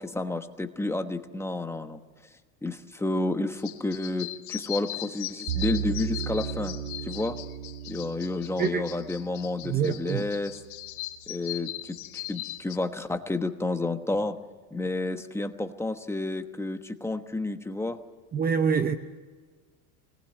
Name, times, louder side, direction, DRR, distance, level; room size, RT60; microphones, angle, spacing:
voice 1, 0.0-2.0 2.6-6.8 7.0-7.4 7.9-10.6 11.3-14.4 14.7-18.0, left 2 dB, 5° left, 1.1 m, -30 dB
sound 1, 3.6-12.8, left 16 dB, 85° left, 2.0 m, -39 dB
sound 2, 5.5-10.6, right 9 dB, 60° right, 2.8 m, -35 dB
voice 2, 9.6-10.2 18.3-19.0, right 6 dB, 20° right, 0.8 m, -25 dB
24.5 x 19.5 x 9.0 m
supercardioid pair, 140°, 42 cm